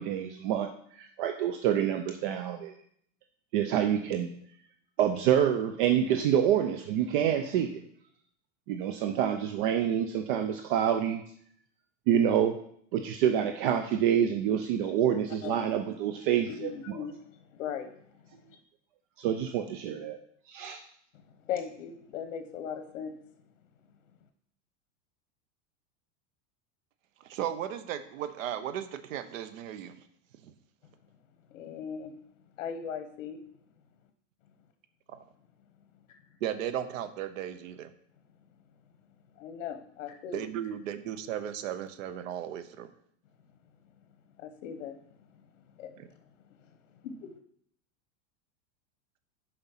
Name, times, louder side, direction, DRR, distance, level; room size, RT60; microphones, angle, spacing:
voice 1, 0.0-2.7 3.5-4.3 5.0-7.8 8.7-11.2 12.1-12.6 12.9-17.0 19.2-20.2 20.5-20.8, right 9 dB, 45° right, 7 dB, 0.5 m, -27 dB
voice 2, 16.4-18.6 21.1-23.2 31.5-32.2 32.6-33.4 36.3-36.4 39.4-40.4 44.4-45.0 45.3-45.5 45.8-45.9 46.5-47.3, left 8 dB, 85° left, 8 dB, 0.9 m, -39 dB
voice 3, 27.2-30.0 30.4-30.5 36.4-37.9 40.3-42.9 46.0-46.1, right 10 dB, 85° right, 11 dB, 0.9 m, -35 dB
7.0 x 5.2 x 5.6 m, 0.66 s
supercardioid pair, 160°, 38 cm